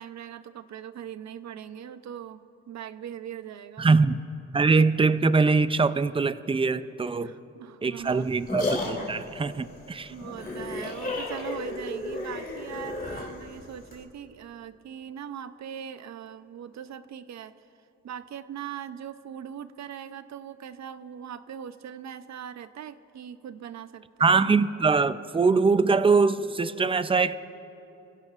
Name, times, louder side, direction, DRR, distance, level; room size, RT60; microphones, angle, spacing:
voice 1, 0.0-3.9 7.2-8.3 10.1-17.5 18.0-24.4, right 9 dB, 65° right, 12 dB, 0.6 m, -40 dB
voice 2, 3.8-4.2 4.5-7.3 7.8-10.1 24.2-27.3, right 4 dB, 20° right, 13 dB, 0.4 m, -23 dB
sound 1, 8.0-14.0, left 2 dB, 30° left, 3.0 m, -33 dB
30.0 x 16.5 x 2.5 m, 2.9 s
cardioid pair, 115°, 29 cm